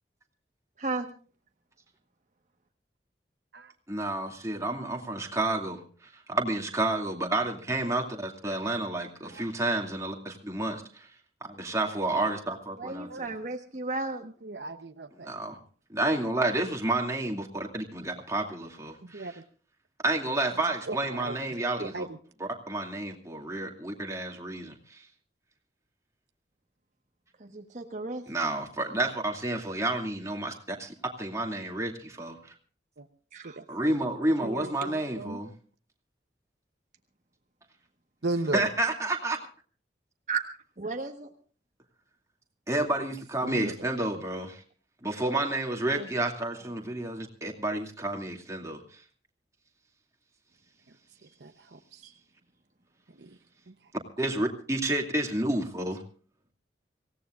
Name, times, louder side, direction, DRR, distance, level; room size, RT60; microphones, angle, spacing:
voice 1, 3.9-11.1 11.4-13.3 15.2-15.6 15.9-19.3 20.0-22.1 22.4-25.0 28.3-32.5 33.7-35.5 38.5-39.4 42.7-44.6 45.0-48.8 54.2-56.0, right 2 dB, 20° right, 1 dB, 2.5 m, -30 dB
voice 2, 12.8-14.3 27.4-28.2 33.3-33.6 40.3-40.4 40.8-41.3 45.4-45.5 46.0-46.1 46.6-46.7 52.0-52.1, right 3 dB, 45° right, 3 dB, 1.4 m, -34 dB
voice 3, 14.4-15.3 19.1-19.3 20.9-21.4 21.8-22.1 33.0-33.1 33.4-33.6 34.4-35.4 38.2-38.7 43.4-43.7 51.4-52.0 53.2-53.4 53.7-53.8, right 2 dB, 70° right, 8 dB, 0.9 m, -35 dB
25.5 x 17.0 x 2.5 m, 0.41 s
head